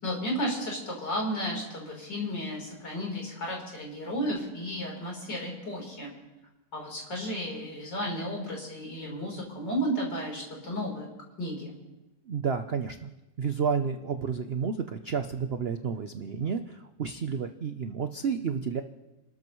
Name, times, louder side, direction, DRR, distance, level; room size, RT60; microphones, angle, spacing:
voice 1, 0.0-6.1 6.7-11.1 11.4-11.7, equal, 70° left, -2 dB, 4.5 m, -33 dB
voice 2, 12.3-13.1 13.4-18.8, right 6 dB, 75° right, 7 dB, 0.5 m, -31 dB
30.0 x 13.0 x 3.1 m, 1.0 s
omnidirectional pair, 2.0 m